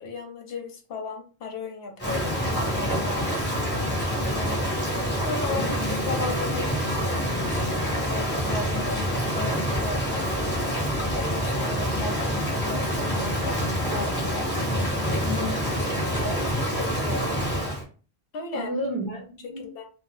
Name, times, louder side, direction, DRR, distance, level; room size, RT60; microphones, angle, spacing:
voice 1, 0.0-5.0 5.2-5.8 6.1-6.7 7.3-14.5 15.1-15.4 16.1-17.4 18.3-18.7 19.6-19.8, left 3 dB, 70° left, 4 dB, 0.9 m, -36 dB
Rain, 2.0-17.8, equal, 10° left, 0.9 m, -26 dB
voice 2, 5.6-6.0 15.2-15.8 18.5-19.6, left 1 dB, 40° right, -2 dB, 0.5 m, -32 dB
2.8 x 2.1 x 3.1 m, 0.37 s
omnidirectional pair, 1.0 m